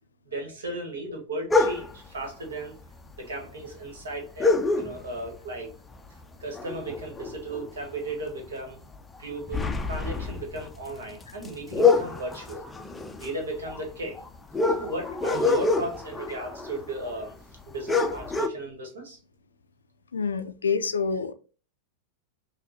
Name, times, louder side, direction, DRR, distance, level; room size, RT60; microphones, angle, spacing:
voice 1, 0.2-2.7 3.2-5.7 6.4-8.8 9.2-12.7 13.2-14.2 14.8-17.4 17.6-19.2, right 2 dB, 65° right, 2 dB, 1.4 m, -35 dB
sound 1, 1.5-2.1 3.1-3.2 3.4-3.5 4.4-5.3 5.7-6.0 6.3-7.9 8.3-8.5 8.9-17.3 17.6-17.7 17.9-18.5, left 4 dB, 10° left, 0.4 m, -26 dB
voice 2, 20.1-21.3, left 5 dB, 70° left, 11 dB, 0.4 m, -27 dB
5.7 x 2.3 x 2.8 m, 0.36 s
figure-of-eight pair, 90°, 0 cm